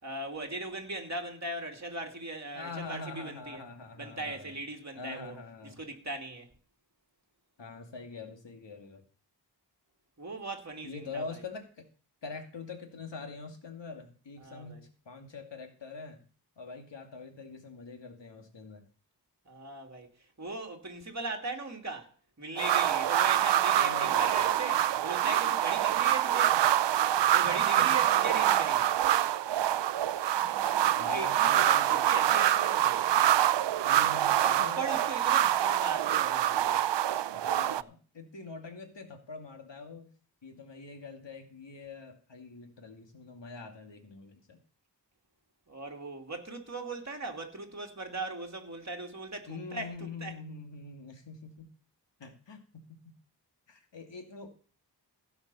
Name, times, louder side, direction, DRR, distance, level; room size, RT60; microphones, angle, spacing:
voice 1, 0.0-3.6 4.0-5.4 5.8-6.5 10.2-11.4 14.4-14.8 19.5-22.1 22.4-26.6 27.3-29.0 31.0-31.7 32.1-33.1 34.4-36.8 45.7-50.3, right 2 dB, 40° right, 2.8 m, -39 dB
voice 2, 2.5-4.6 4.9-5.8 7.6-9.0 10.8-11.8 12.2-16.2 16.6-18.8 23.7-24.5 26.5-26.6 27.2-27.9 30.4-32.4 33.8-34.9 37.3-40.1 40.4-44.6 49.5-51.7 52.2-52.6 53.7-54.5, left 4 dB, 85° left, 2.5 m, -44 dB
sound 1, 22.6-37.8, right 12 dB, 80° right, 0.5 m, -26 dB
16.5 x 6.0 x 5.6 m
wide cardioid pair, 55°, 42 cm